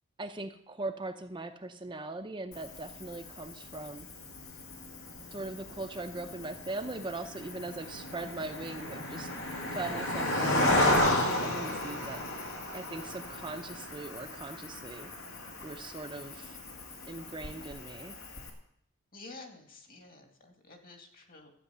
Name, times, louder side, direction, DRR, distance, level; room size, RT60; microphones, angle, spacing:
voice 1, 0.2-4.1 5.3-12.2 12.7-15.1 15.6-16.6 17.1-18.2, right 2 dB, 20° right, 6 dB, 0.6 m, -40 dB
Cricket, 2.5-18.5, left 1 dB, 75° left, 2.4 m, -34 dB
voice 2, 19.1-21.5, left 3 dB, 40° left, 4 dB, 2.1 m, -50 dB
12.5 x 8.7 x 6.8 m, 0.71 s
head